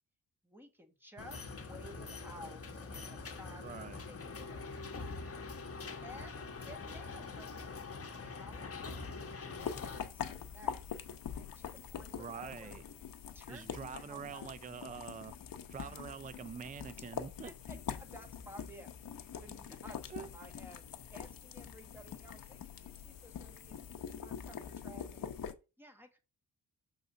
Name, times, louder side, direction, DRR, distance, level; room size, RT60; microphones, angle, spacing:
voice 1, 0.4-5.1 6.0-7.5 8.2-10.7 11.4-12.8 13.3-14.5 15.8-16.0 17.4-18.9 19.4-23.8 24.2-25.3 25.8-26.2, equal, 5° right, 1.7 m, -55 dB
sound 1, 1.2-10.0, left 4 dB, 35° left, 1.2 m, -44 dB
voice 2, 3.6-4.0 12.1-12.8 13.5-15.3 15.7-17.5 20.1-20.3, right 6 dB, 20° right, 0.4 m, -45 dB
sound 2, 9.6-25.5, left 8 dB, 60° left, 0.9 m, -44 dB
6.8 x 3.9 x 5.1 m
cardioid pair, 70°, 38 cm